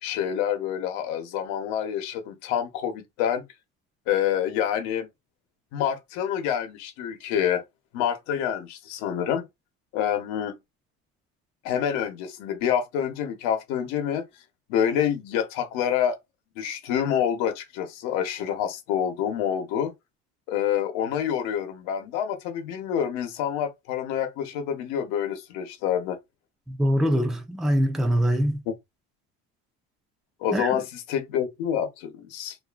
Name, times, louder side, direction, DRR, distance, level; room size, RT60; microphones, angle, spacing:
voice 1, 0.0-3.4 4.1-5.1 5.7-7.6 7.9-9.5 9.9-10.6 11.6-14.3 14.7-16.2 16.6-19.9 20.5-26.2 28.7-28.8 30.4-32.6, left 9 dB, 90° left, 0.9 m, -27 dB
voice 2, 26.7-28.6 30.5-30.8, equal, ahead, 0.3 m, -23 dB
2.6 x 2.5 x 2.4 m
cardioid pair, 150°, 30 cm